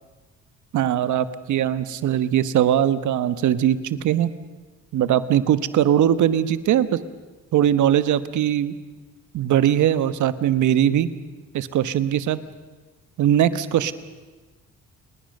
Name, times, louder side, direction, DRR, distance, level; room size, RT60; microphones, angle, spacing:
voice 1, 0.7-4.3 4.9-7.0 7.5-8.7 9.3-11.1 11.5-12.4 13.2-13.9, right 10 dB, 75° right, 13 dB, 1.3 m, -20 dB
30.0 x 20.0 x 6.7 m, 1.3 s
cardioid pair, 90°, 30 cm